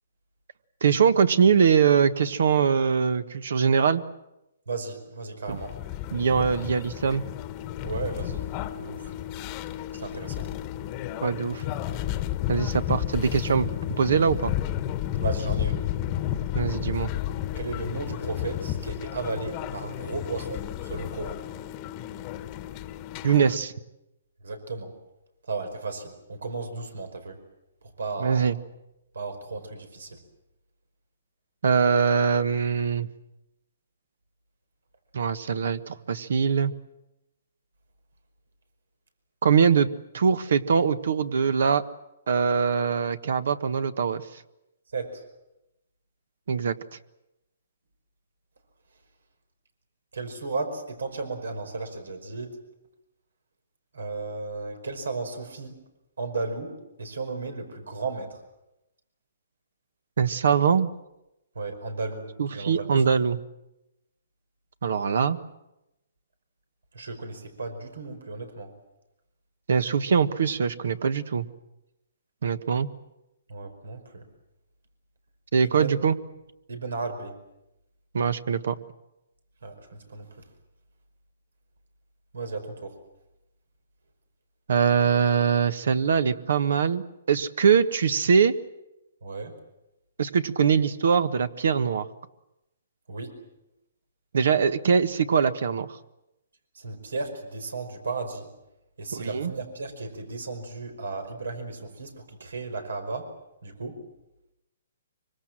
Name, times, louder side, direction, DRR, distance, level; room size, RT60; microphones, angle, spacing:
voice 1, 0.8-4.0 5.5-5.6 6.1-7.2 11.2-11.6 12.5-13.7 14.0-14.5 16.5-17.1 23.2-23.7 28.2-28.6 31.6-33.1 35.1-36.7 39.4-39.9 40.1-41.9 42.3-44.2 46.5-46.7 60.2-60.9 62.4-63.4 64.8-65.4 69.7-71.5 72.4-72.9 75.5-76.2 78.1-78.8 84.7-88.5 90.2-92.1 94.3-95.9 99.1-99.5, right 6 dB, 70° right, 13 dB, 1.4 m, -22 dB
voice 2, 4.7-5.7 7.8-8.4 8.7-9.1 9.9-10.5 15.2-15.8 17.6-21.4 24.4-24.9 25.5-27.4 28.0-28.4 29.1-30.2 44.9-45.2 50.1-52.6 53.9-55.8 56.2-58.4 61.6-63.1 66.9-68.7 73.5-74.2 75.6-76.0 76.7-77.3 79.6-80.3 82.3-83.0 89.2-89.5 93.1-93.4 96.8-98.5 99.0-103.3 103.6-104.0, right 3 dB, 90° right, 7 dB, 5.3 m, -34 dB
sound 1, 5.5-23.6, left 12 dB, 30° left, 1.2 m, -32 dB
24.5 x 24.5 x 7.6 m, 0.92 s
hypercardioid pair, 155°, 0 cm